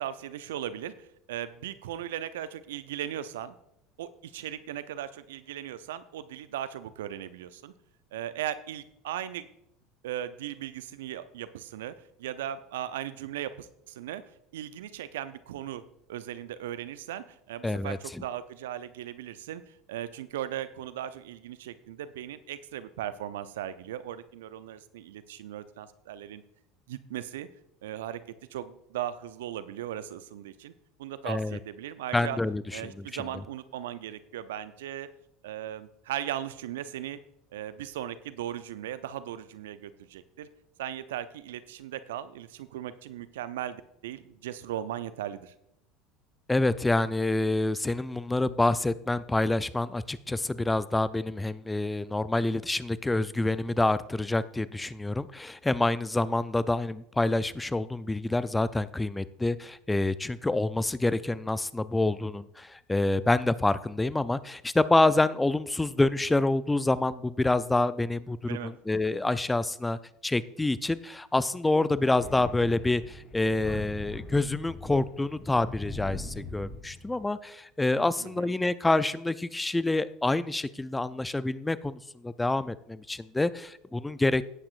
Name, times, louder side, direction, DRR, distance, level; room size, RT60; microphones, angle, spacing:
voice 1, 0.0-3.5 4.0-7.7 8.1-9.5 10.0-14.2 14.5-15.8 16.1-26.4 26.9-27.5 27.8-28.2 28.5-30.7 31.0-32.4 32.7-35.1 35.4-37.2 37.5-40.5 40.8-45.5 68.5-68.7 78.2-78.5, right 11 dB, 75° right, 13 dB, 0.6 m, -37 dB
voice 2, 17.6-18.0 31.2-31.6 32.1-33.1 46.5-84.4, left 2 dB, 10° left, 15 dB, 0.5 m, -27 dB
Thunder, 72.2-77.3, left 3 dB, 35° left, 3.8 m, -41 dB
17.5 x 8.7 x 2.5 m, 0.78 s
hypercardioid pair, 70°, 0 cm